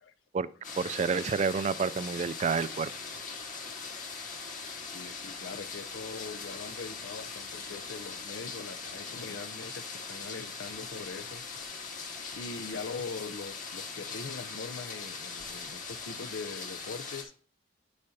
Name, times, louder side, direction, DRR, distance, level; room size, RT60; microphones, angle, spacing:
sound 1, 0.6-17.2, left 4 dB, 45° left, 1.5 m, -41 dB
voice 1, 0.8-2.9, right 5 dB, 35° right, 0.3 m, -29 dB
voice 2, 4.8-9.8 10.1-11.4 12.3-17.3, left 4 dB, 80° left, 0.6 m, -42 dB
9.9 x 6.5 x 2.7 m
head